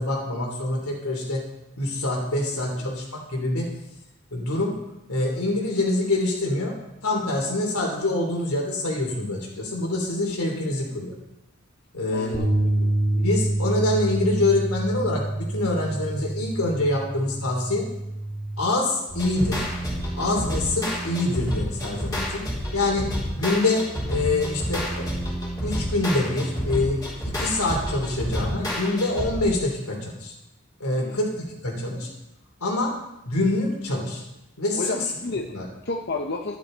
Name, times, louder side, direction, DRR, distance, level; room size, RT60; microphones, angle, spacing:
voice 1, 0.0-1.4 1.8-3.7 4.3-4.7 5.1-6.7 7.0-11.1 11.9-12.4 13.2-17.8 18.6-19.6 20.2-22.4 22.7-23.1 23.4-23.8 24.1-25.0 25.6-27.0 27.2-30.3 30.8-32.1 32.6-32.9 33.3-34.2 34.6-34.8 35.5-35.6, left 2 dB, 85° left, -1 dB, 3.4 m, -25 dB
voice 2, 2.5-2.9 12.1-12.5 12.8-13.4 22.7-22.8 31.0-31.3 34.8-35.5 35.8-36.6, left 3 dB, 45° left, 3 dB, 0.7 m, -32 dB
sound 1, 12.3-18.6, right 1 dB, 35° right, 2.1 m, -27 dB
sound 2, 19.1-29.6, equal, 15° left, 3.6 m, -29 dB
11.5 x 11.5 x 4.0 m, 0.89 s
head